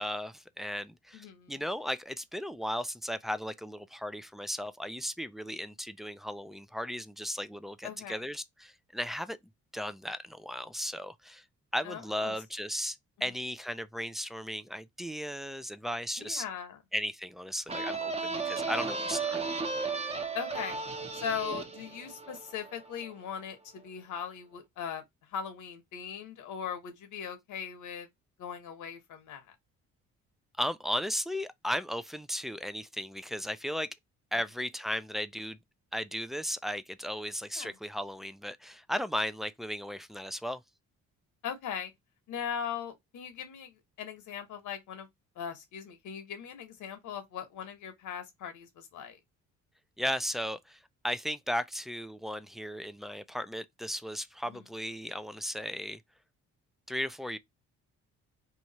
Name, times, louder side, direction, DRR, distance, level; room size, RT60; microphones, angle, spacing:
voice 1, 0.0-9.4 9.7-11.4 11.7-16.4 16.9-19.4 30.6-33.9 34.3-35.6 35.9-40.6 50.0-50.8 51.0-56.0 56.9-57.4, equal, ahead, 0.3 m, -36 dB
voice 2, 1.1-1.6 7.8-8.2 11.8-12.3 16.2-16.8 20.3-20.8 21.1-25.0 25.3-28.1 28.4-29.5 37.5-37.8 41.4-41.9 42.3-45.1 45.4-49.2 54.5-54.6, left 8 dB, 80° left, 1.2 m, -39 dB
sound 1, 17.7-23.1, right 4 dB, 20° right, 0.8 m, -35 dB
3.1 x 2.4 x 4.1 m
cardioid pair, 90°, 30 cm